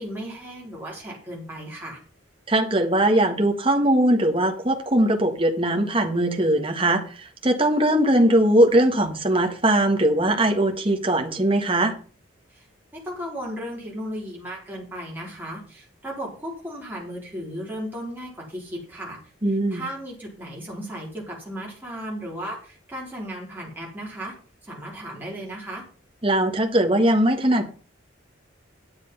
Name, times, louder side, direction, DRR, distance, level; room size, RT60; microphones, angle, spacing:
voice 1, 0.0-2.0 12.5-12.7 12.9-19.2 19.7-24.3 24.6-25.8, equal, 10° right, -4 dB, 3.9 m, -35 dB
voice 2, 2.5-11.9 19.4-19.8 26.2-27.7, right 1 dB, 25° right, 5 dB, 1.5 m, -20 dB
10.0 x 8.0 x 5.4 m, 0.41 s
head